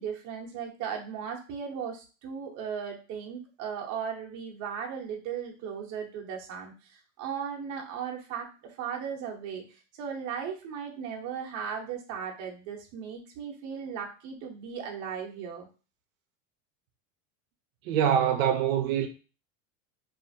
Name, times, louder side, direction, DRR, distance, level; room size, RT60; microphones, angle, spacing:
voice 1, 0.0-15.7, right 7 dB, 50° right, 0.8 m, -37 dB
voice 2, 17.9-19.1, right 9 dB, 85° right, 0.6 m, -24 dB
2.8 x 2.5 x 2.6 m
supercardioid pair, 135°, 39 cm